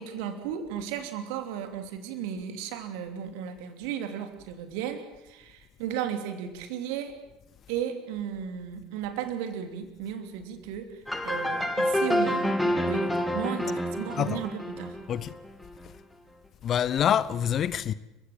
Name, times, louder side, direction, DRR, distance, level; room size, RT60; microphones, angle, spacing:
voice 1, 0.0-7.2 7.7-15.0, right 9 dB, 60° right, 2.9 m, -35 dB
sound 1, 11.1-15.7, left 1 dB, 5° left, 2.7 m, -28 dB
voice 2, 16.6-17.9, left 9 dB, 35° left, 0.8 m, -26 dB
29.5 x 16.0 x 7.7 m
figure-of-eight pair, 70°, 0 cm